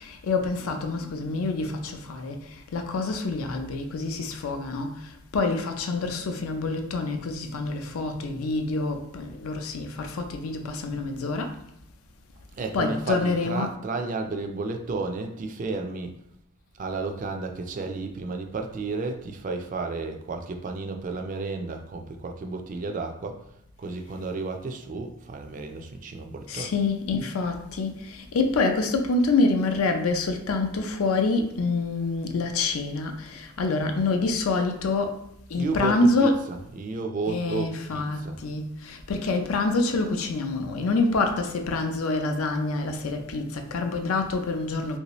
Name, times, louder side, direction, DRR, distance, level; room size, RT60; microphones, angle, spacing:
voice 1, 0.0-11.6 12.7-13.7 26.5-35.2 35.5-36.4 37.3-45.0, left 3 dB, 80° left, 0.5 m, -26 dB
voice 2, 12.5-16.2 16.8-23.5 23.8-26.7 35.6-38.4, right 3 dB, 35° right, 0.3 m, -32 dB
3.3 x 2.7 x 2.9 m
head